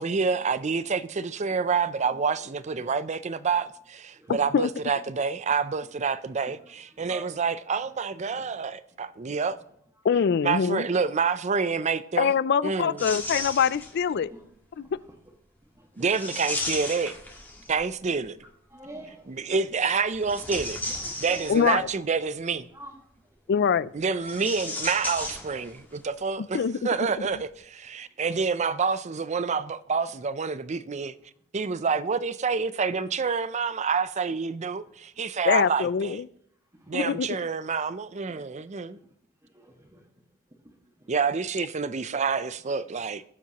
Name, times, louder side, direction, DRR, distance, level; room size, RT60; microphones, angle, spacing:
voice 1, 0.0-9.6 10.4-12.3 12.6-13.0 16.0-17.1 17.7-18.4 19.4-20.8 21.2-22.7 23.9-31.1 31.5-36.2 36.9-39.0 41.1-43.2, right 5 dB, 35° right, 0.5 m, -28 dB
voice 2, 4.1-4.7 6.4-7.5 8.3-8.5 8.9-9.4 10.0-10.4 12.4-12.5 13.4-13.6 14.1-14.5 14.7-15.3 15.6-16.1 17.6-17.8 18.4-19.7 20.9-21.7 22.7-23.6 35.1-35.2 36.7-37.3 38.2-39.1 39.4-41.1, right 1 dB, 20° right, 1.7 m, -50 dB
voice 3, 10.0-10.9 12.2-14.3 21.5-21.9 23.5-23.9 26.4-26.8 35.5-36.3 36.9-37.3, left 7 dB, 55° left, 0.4 m, -24 dB
sound 1, 13.0-14.1 16.1-17.9 20.1-21.9 24.2-25.9 26.2-26.3 27.2-27.4, left 2 dB, 10° left, 1.7 m, -35 dB
19.5 x 7.5 x 3.0 m
head